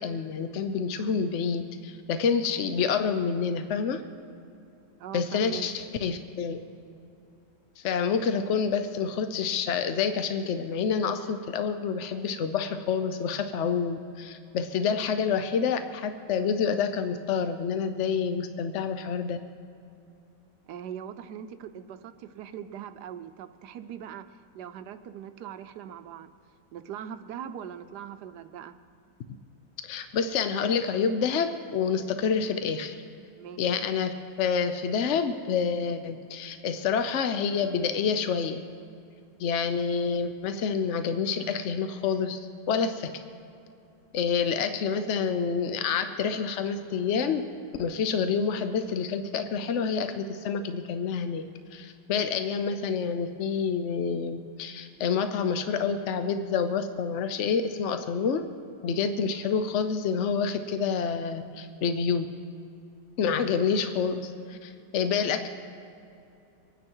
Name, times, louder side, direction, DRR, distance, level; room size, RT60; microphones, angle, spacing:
voice 1, 0.0-4.0 5.1-6.6 7.8-19.4 29.8-33.0 33.6-38.6 39.4-43.1 44.1-47.4 47.8-51.4 51.7-58.4 58.8-62.3 63.2-65.5, left 6 dB, 65° left, 9 dB, 0.7 m, -28 dB
voice 2, 5.0-5.7 20.7-24.2 24.5-26.3 26.7-28.7 33.4-33.6, right 9 dB, 70° right, 10 dB, 1.2 m, -41 dB
24.5 x 9.6 x 4.6 m, 2.7 s
omnidirectional pair, 1.9 m